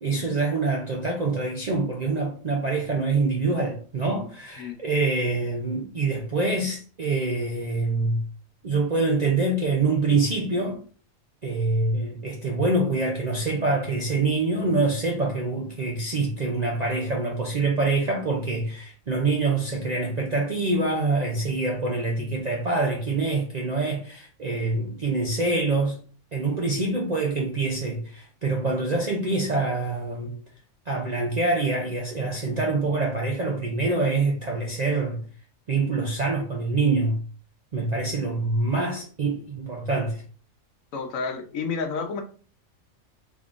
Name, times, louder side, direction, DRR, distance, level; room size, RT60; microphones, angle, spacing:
voice 1, 0.0-8.2 8.6-10.8 11.4-26.0 26.3-30.4 30.9-35.2 35.7-37.2 37.7-40.2, right 3 dB, 55° right, 0.4 m, -25 dB
voice 2, 40.9-42.2, left 5 dB, 90° left, 1.1 m, -30 dB
3.6 x 3.6 x 2.5 m
omnidirectional pair, 1.4 m